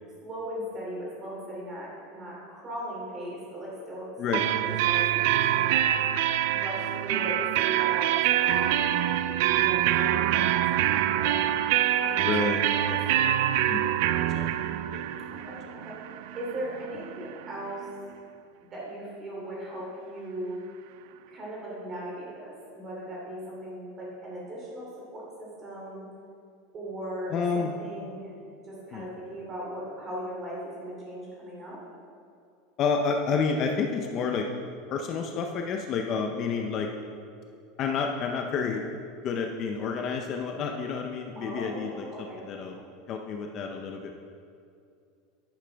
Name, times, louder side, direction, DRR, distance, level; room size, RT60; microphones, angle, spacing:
voice 1, 0.2-5.9 6.4-8.1 8.4-9.0 9.5-11.5 12.0-12.5 12.8-13.3 15.4-17.9 18.7-20.6 21.3-26.0 26.7-28.3 28.6-31.8 41.4-42.4, right 1 dB, 20° right, -4 dB, 2.7 m, -38 dB
sound 1, 4.3-17.9, right 12 dB, 55° right, 0.3 m, -25 dB
voice 2, 12.2-12.6 12.8-13.0 13.7-15.4 27.3-27.7 28.9-29.1 32.8-34.5 34.9-36.9 37.8-38.8 39.2-42.8 43.1-44.2, left 5 dB, 30° left, 3 dB, 0.5 m, -30 dB
10.5 x 10.0 x 3.4 m, 2.4 s
supercardioid pair, 175°, 0 cm